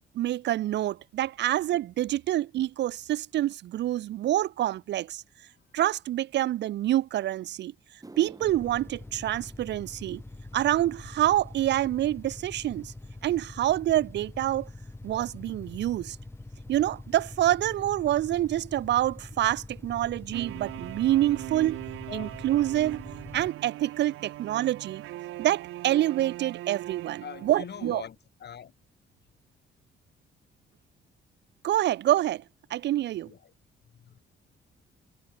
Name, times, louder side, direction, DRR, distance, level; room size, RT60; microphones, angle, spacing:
voice 1, 0.2-5.2 5.7-7.7 8.2-10.2 10.5-12.9 13.2-14.7 15.0-16.2 16.7-21.8 22.1-23.0 23.3-25.0 25.4-28.0 31.6-32.4 32.7-33.3, right 13 dB, 60° right, 0.4 m, -27 dB
sound 1, 7.8-16.3 16.6-17.1 17.8-17.9 20.7-20.8 22.4-22.5 22.7-22.9 23.2-23.7 24.1-24.2 24.8-24.9, right 2 dB, 15° right, 3.0 m, -57 dB
sound 2, 8.4-23.5, left 2 dB, 10° left, 1.4 m, -44 dB
sound 3, 20.3-28.1, right 16 dB, 90° right, 1.7 m, -40 dB
voice 2, 22.1-22.4 24.2-24.3 27.2-28.7 33.2-33.5 33.9-34.2, left 8 dB, 55° left, 5.6 m, -43 dB
cardioid pair, 90°, 20 cm